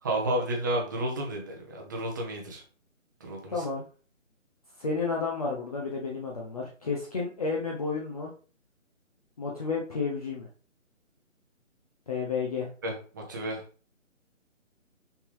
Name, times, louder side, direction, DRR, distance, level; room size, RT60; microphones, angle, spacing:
voice 1, 0.0-2.6 3.2-3.6 12.8-13.6, right 1 dB, 15° right, 0 dB, 1.0 m, -31 dB
voice 2, 3.5-3.8 4.8-8.3 9.4-10.5 12.1-12.7, left 4 dB, 30° left, -2 dB, 1.0 m, -31 dB
6.0 x 5.7 x 3.4 m, 0.39 s
figure-of-eight pair, 165°, 40 cm